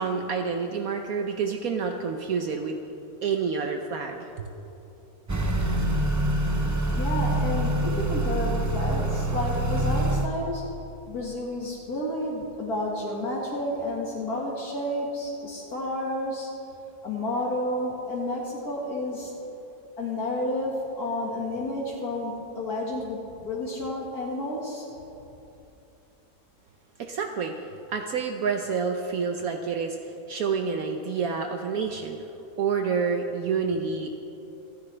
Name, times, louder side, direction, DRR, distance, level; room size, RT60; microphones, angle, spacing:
voice 1, 0.0-2.8 3.2-4.5 27.0-32.3 32.6-34.1, right 5 dB, 65° right, 4 dB, 1.1 m, -28 dB
Motor vehicle (road) / Accelerating revving vroom, 5.3-10.3, right 1 dB, 25° right, 0.3 m, -25 dB
voice 2, 7.0-10.7 11.1-16.5 17.0-19.3 20.0-24.9, left 1 dB, 70° left, -3 dB, 2.2 m, -31 dB
27.0 x 10.0 x 3.3 m, 2.9 s
omnidirectional pair, 1.7 m